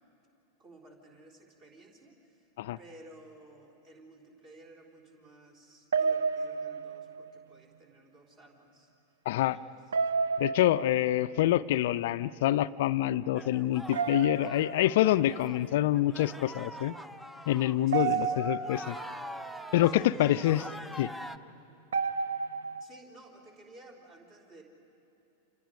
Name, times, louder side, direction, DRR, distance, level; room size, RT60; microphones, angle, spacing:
voice 1, 0.6-2.5 2.8-8.9 9.4-9.7 17.9-18.5 19.8-20.5 22.8-24.6, right 2 dB, 35° right, 1 dB, 3.8 m, -54 dB
sound 1, 5.9-7.4 9.9-11.4 13.9-15.2 17.9-19.2 21.9-22.8, right 5 dB, 65° right, 0.6 m, -31 dB
voice 2, 9.3-9.6 10.4-16.9 17.5-19.0 19.7-20.6 21.0-21.1, left 14 dB, 55° left, 16 dB, 0.5 m, -26 dB
sound 2, 13.4-17.9 18.3-21.4, equal, ahead, 0.6 m, -44 dB
30.0 x 27.0 x 5.2 m, 3.0 s
figure-of-eight pair, 90°, 0 cm